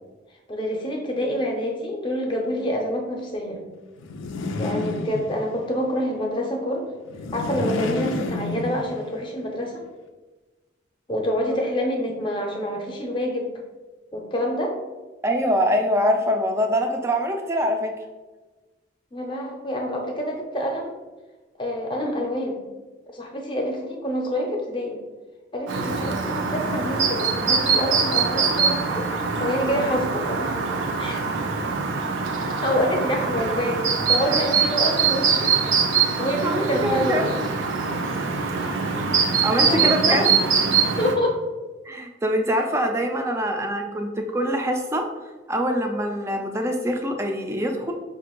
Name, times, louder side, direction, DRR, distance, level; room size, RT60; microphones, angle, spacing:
voice 1, 0.5-3.6 4.6-6.9 7.3-9.8 11.1-13.5 14.1-14.8 19.1-20.9 21.6-22.6 23.1-25.0 25.5-29.1 29.4-30.5 31.0-31.2 32.6-35.5 36.2-37.3 39.7-40.3 41.0-41.4, equal, 25° left, 1 dB, 0.6 m, -27 dB
sound 1, 4.0-5.7 7.1-9.2, left 2 dB, 85° left, 0.4 m, -30 dB
voice 2, 15.2-17.9 36.4-37.3 39.4-40.2 41.9-45.1 45.5-47.9, equal, 15° right, 3 dB, 0.4 m, -24 dB
Chirp tweet, 25.7-41.1, right 5 dB, 80° right, 0.6 m, -23 dB
5.4 x 2.5 x 2.9 m, 1.2 s
head